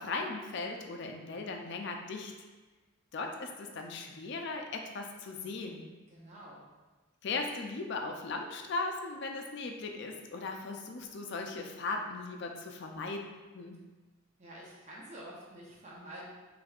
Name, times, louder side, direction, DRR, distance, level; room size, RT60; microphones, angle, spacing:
voice 1, 0.0-2.3 3.1-5.9 7.2-13.2 13.5-13.8, left 3 dB, 55° left, 3 dB, 0.4 m, -38 dB
voice 2, 6.1-6.7 14.4-16.3, right 1 dB, 35° right, -5 dB, 0.8 m, -48 dB
5.1 x 3.2 x 2.4 m, 1.2 s
head